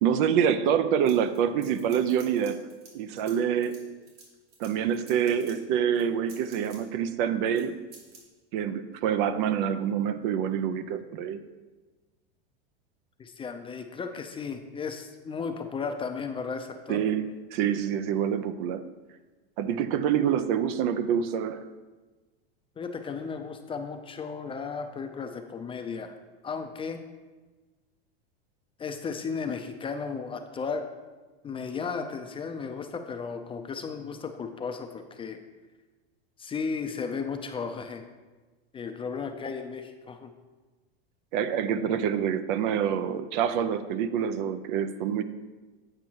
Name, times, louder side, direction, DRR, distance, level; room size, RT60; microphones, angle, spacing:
voice 1, 0.0-2.6 2.9-3.8 4.6-7.8 8.5-11.4 16.9-18.8 19.6-21.6 41.3-45.2, right 8 dB, 55° right, 11 dB, 0.6 m, -26 dB
sound 1, 1.0-2.9 3.2-5.5 5.9-6.8 7.5-7.6 7.9-8.2, right 4 dB, 75° right, 2.9 m, -51 dB
voice 2, 13.2-17.0 22.8-26.2 26.4-27.0 28.8-30.9 31.4-35.4 36.4-38.1 38.7-40.3, left 5 dB, 20° left, 6 dB, 0.6 m, -35 dB
8.8 x 5.2 x 4.6 m, 1.3 s
hypercardioid pair, 115°, 30 cm